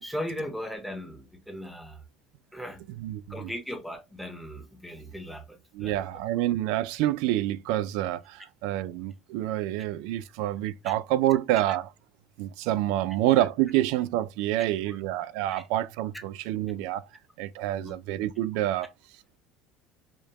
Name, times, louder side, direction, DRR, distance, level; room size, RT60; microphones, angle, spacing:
voice 1, 0.0-2.0 2.5-2.8 3.3-6.0 10.8-10.9 14.6-15.0 15.5-15.6 17.8-17.9, equal, ahead, 0.7 m, -38 dB
voice 2, 3.0-3.5 5.7-11.9 12.4-17.1 17.4-18.9, right 14 dB, 75° right, 0.3 m, -27 dB
5.0 x 2.2 x 2.9 m
cardioid pair, 140°, 0 cm